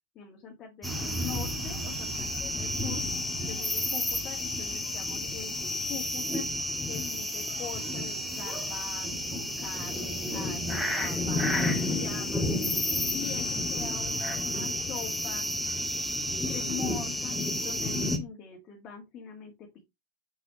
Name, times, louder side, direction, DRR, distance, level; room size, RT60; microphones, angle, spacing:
voice 1, 0.2-12.5 13.1-15.6 16.5-19.8, left 7 dB, 30° left, 0 dB, 1.9 m, -43 dB
sound 1, 0.8-18.2, left 1 dB, 5° left, 1.6 m, -31 dB
6.6 x 6.0 x 3.0 m, 0.20 s
figure-of-eight pair, 90°, 0 cm